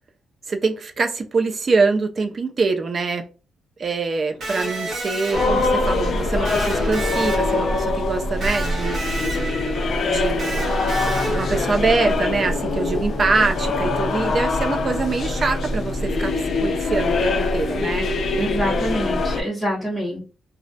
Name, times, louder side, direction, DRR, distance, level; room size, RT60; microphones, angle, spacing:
voice 1, 0.5-3.3 3.8-9.0 10.0-18.1, right 4 dB, 45° right, 0.5 m, -24 dB
Electric guitar, 4.4-12.1, right 1 dB, 60° right, 1.0 m, -30 dB
sound 1, 5.3-19.4, left 2 dB, 55° left, 0.4 m, -23 dB
voice 2, 18.3-20.2, equal, ahead, 1.1 m, -25 dB
2.3 x 2.1 x 2.6 m
cardioid pair, 95°, 0 cm